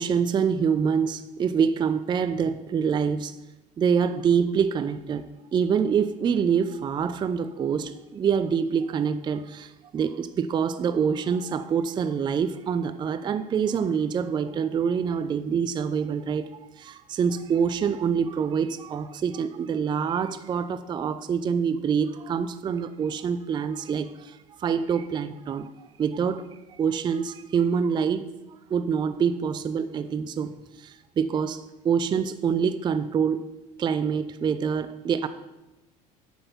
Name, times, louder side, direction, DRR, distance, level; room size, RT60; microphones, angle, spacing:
voice 1, 0.0-3.3 3.8-25.7 26.0-26.4 26.8-28.3 28.7-33.5 33.8-35.3, right 7 dB, 20° right, 12 dB, 0.4 m, -26 dB
7.5 x 4.4 x 5.8 m, 0.99 s
figure-of-eight pair, 70°, 21 cm